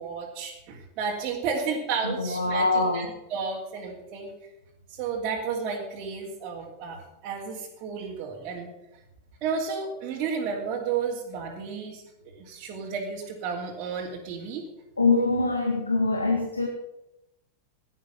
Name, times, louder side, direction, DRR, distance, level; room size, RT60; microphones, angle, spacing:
voice 1, 0.0-4.3 4.9-8.7 9.4-12.0 12.3-14.6, right 5 dB, 35° right, -4 dB, 3.0 m, -32 dB
voice 2, 2.2-3.1 15.0-16.7, left 3 dB, 80° left, 3 dB, 1.8 m, -24 dB
17.0 x 11.0 x 6.0 m, 0.90 s
figure-of-eight pair, 90°, 0 cm